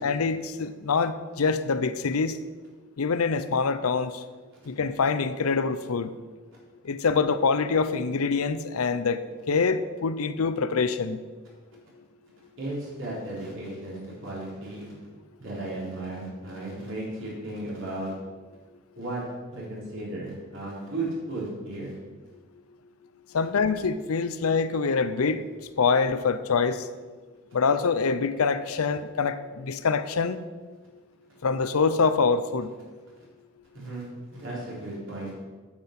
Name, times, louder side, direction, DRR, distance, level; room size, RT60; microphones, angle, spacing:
voice 1, 0.0-2.4 3.0-4.2 4.7-6.1 6.8-11.2 23.3-25.4 25.8-26.9 27.5-30.4 31.4-32.7, left 5 dB, 85° left, 12 dB, 0.6 m, -25 dB
voice 2, 12.6-15.0 15.4-18.1 19.0-19.2 19.5-22.0 33.7-35.3, right 2 dB, 60° right, -5 dB, 3.8 m, -35 dB
8.8 x 7.6 x 6.0 m, 1.4 s
head